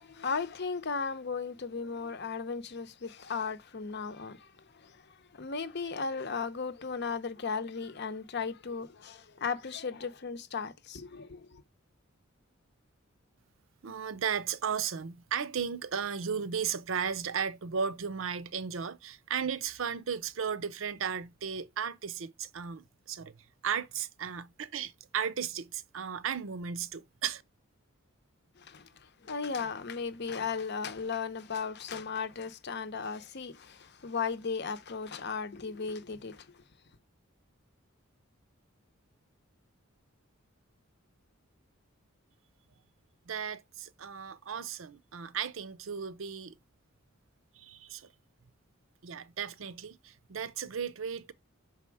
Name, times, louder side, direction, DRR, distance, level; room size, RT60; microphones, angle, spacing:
voice 1, 0.0-11.6 28.6-36.6, left 5 dB, 55° left, 0.7 m, -36 dB
voice 2, 13.8-23.4 23.6-27.4 43.3-46.5 47.6-48.1 49.0-51.3, right 7 dB, 65° right, 0.6 m, -35 dB
6.1 x 4.2 x 4.7 m
head